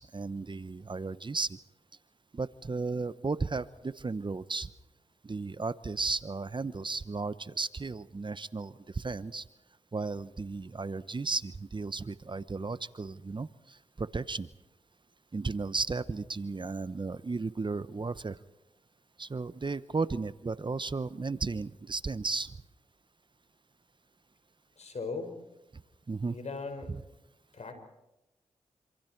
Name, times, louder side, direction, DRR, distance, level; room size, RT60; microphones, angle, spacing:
voice 1, 0.0-1.6 2.3-4.7 5.2-9.4 9.9-14.5 15.3-18.4 19.2-22.5 26.1-26.4, right 3 dB, 40° right, 15 dB, 0.9 m, -34 dB
voice 2, 24.8-25.4 26.3-27.0 27.5-27.7, left 4 dB, 60° left, 6 dB, 5.7 m, -38 dB
27.0 x 27.0 x 4.6 m, 0.95 s
cardioid pair, 45°, 13 cm